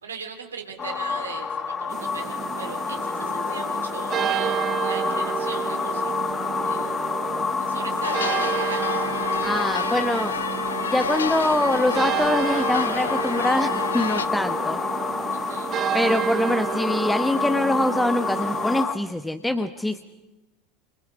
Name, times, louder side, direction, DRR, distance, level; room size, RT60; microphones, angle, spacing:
voice 1, 0.0-6.2 6.6-7.1 7.7-9.0 15.4-15.7, right 6 dB, 75° right, 4 dB, 3.0 m, -39 dB
sound 1, 0.8-18.9, left 5 dB, 25° left, 1.5 m, -29 dB
sound 2, 1.9-18.9, right 9 dB, 35° right, 1.0 m, -30 dB
sound 3, 8.0-14.3, left 6 dB, 75° left, 0.8 m, -30 dB
voice 2, 9.4-10.3 10.9-14.8 15.9-20.0, left 1 dB, 5° left, 8 dB, 1.2 m, -24 dB
28.0 x 27.0 x 5.0 m, 1.0 s
figure-of-eight pair, 75°, 0 cm